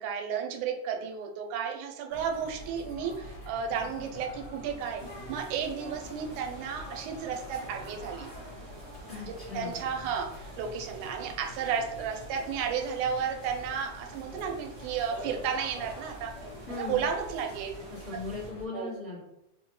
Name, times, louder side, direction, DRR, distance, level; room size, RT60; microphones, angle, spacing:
voice 1, 0.0-5.0 5.3-8.3 9.3-16.3 16.7-17.7 18.3-18.4 18.7-18.9, right 7 dB, 90° right, 3 dB, 2.0 m, -33 dB
sound 1, 2.1-18.6, equal, 55° left, 1.3 m, -45 dB
sound 2, 5.0-18.5, right 3 dB, 70° right, 2.1 m, -54 dB
voice 2, 9.1-9.8 16.6-17.0 17.9-19.2, left 4 dB, 80° left, -9 dB, 0.5 m, -38 dB
4.7 x 2.2 x 3.0 m, 0.82 s
omnidirectional pair, 3.5 m